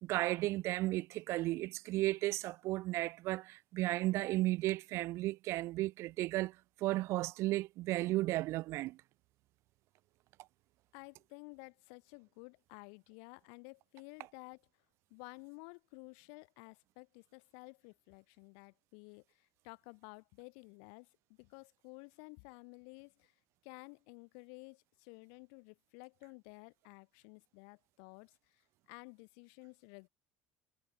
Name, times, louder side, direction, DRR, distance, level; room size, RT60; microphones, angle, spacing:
voice 1, 0.0-6.5 6.8-9.0, right 18 dB, 60° right, 0.4 m, -34 dB
voice 2, 10.9-14.6 15.1-23.3 23.6-30.1, left 40 dB or more, 75° left, 2.0 m, -53 dB
supercardioid pair, 90°, 5 cm